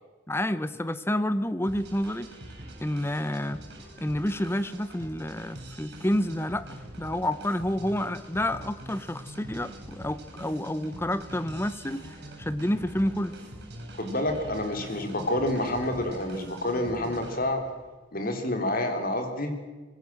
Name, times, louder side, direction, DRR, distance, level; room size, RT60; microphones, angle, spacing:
voice 1, 0.3-2.3 2.8-3.6 4.0-13.4, left 1 dB, 10° left, 14 dB, 0.8 m, -29 dB
sound 1, 1.6-17.8, right 1 dB, 55° right, 7.9 m, -44 dB
voice 2, 14.0-17.6 18.1-19.5, left 1 dB, 45° left, 5 dB, 4.0 m, -28 dB
26.0 x 21.0 x 7.8 m, 1.3 s
head